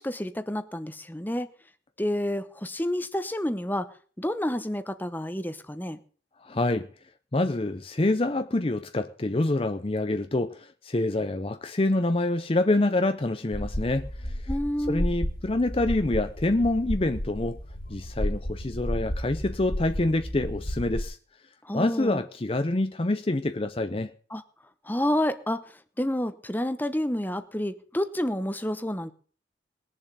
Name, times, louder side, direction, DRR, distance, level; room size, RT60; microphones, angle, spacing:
voice 1, 0.0-1.5 2.0-3.9 4.2-6.0 14.5-15.1 21.6-22.2 24.3-24.4 24.9-25.6 26.0-29.1, left 1 dB, 10° left, 0.9 m, -29 dB
voice 2, 6.4-6.9 7.3-14.3 14.9-17.6 17.9-21.2 21.7-24.1, left 2 dB, 30° left, 0.7 m, -26 dB
sound 1, 13.5-21.0, equal, 55° left, 2.5 m, -32 dB
20.5 x 7.3 x 6.9 m
head